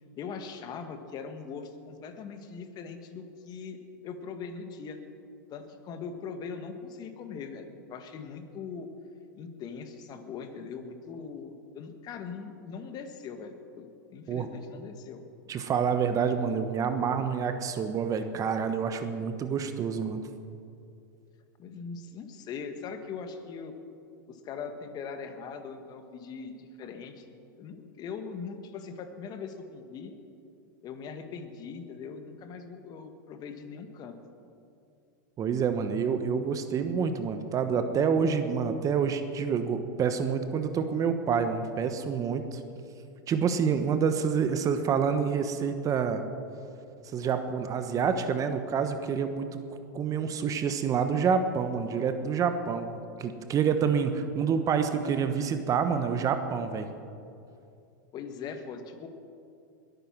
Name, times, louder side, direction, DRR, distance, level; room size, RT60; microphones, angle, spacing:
voice 1, 0.2-3.8 4.0-5.0 5.5-8.9 9.4-15.2 21.6-23.7 24.3-30.1 30.8-34.2 58.1-59.1, left 5 dB, 40° left, 7 dB, 1.8 m, -41 dB
voice 2, 15.5-20.2 35.4-42.6 43.3-46.2 47.1-49.5 49.9-52.9 53.2-56.9, right 6 dB, 30° right, 8 dB, 1.1 m, -27 dB
21.0 x 9.3 x 6.1 m, 2.6 s
hypercardioid pair, 105°, 11 cm